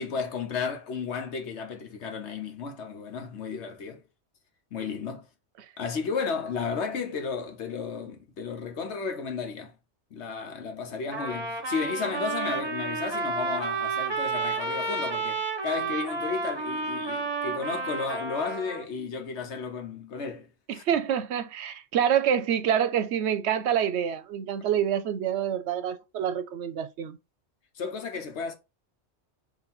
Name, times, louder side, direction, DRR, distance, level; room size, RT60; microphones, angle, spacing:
voice 1, 0.0-4.0 4.7-5.3 5.8-9.7 10.1-20.8 27.7-28.5, left 5 dB, 75° left, 1.2 m, -33 dB
Trumpet, 11.1-18.8, right 3 dB, 25° right, 0.8 m, -31 dB
voice 2, 20.7-27.2, right 9 dB, 75° right, 0.8 m, -27 dB
4.0 x 2.7 x 4.2 m
omnidirectional pair, 1.2 m